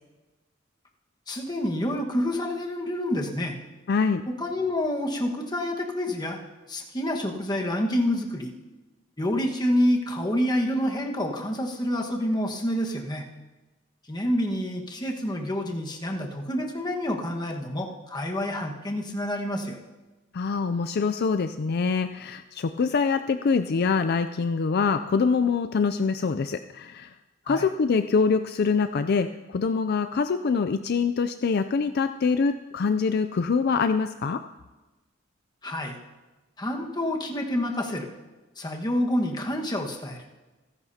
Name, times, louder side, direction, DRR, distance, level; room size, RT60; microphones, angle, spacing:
voice 1, 1.3-3.6 4.4-6.4 6.7-8.5 9.2-13.2 14.1-19.8 27.4-27.6 35.6-36.0 36.6-38.1 38.6-40.2, left 1 dB, 20° left, 1 dB, 1.4 m, -28 dB
voice 2, 3.9-4.2 20.3-27.1 27.5-34.4, left 5 dB, 55° left, 10 dB, 0.4 m, -24 dB
28.0 x 10.5 x 2.8 m, 1.2 s
head